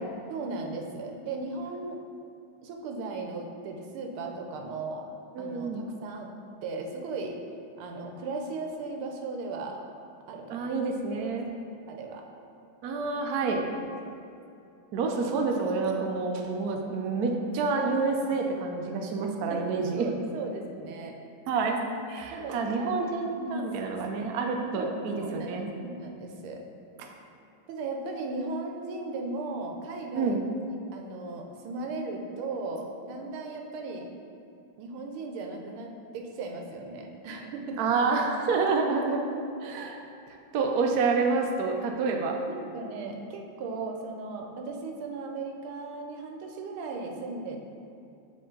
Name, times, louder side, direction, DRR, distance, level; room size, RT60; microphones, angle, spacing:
voice 1, 0.3-2.0 2.6-5.1 5.4-6.3 6.6-7.4 7.8-9.8 10.3-10.7 11.2-11.6 11.9-12.2 19.2-21.2 22.3-23.9 24.7-26.6 27.7-30.4 30.9-34.1 34.8-37.8 42.5-47.6, right 3 dB, 85° right, 2 dB, 1.5 m, -37 dB
voice 2, 5.4-5.8 10.5-11.5 12.8-13.6 14.9-20.1 21.5-21.8 22.1-25.7 27.0-27.1 30.1-30.4 37.8-39.2 39.6-40.0 40.3-42.4, right 4 dB, 70° right, 2 dB, 0.9 m, -28 dB
7.7 x 3.7 x 3.8 m, 2.6 s
omnidirectional pair, 2.3 m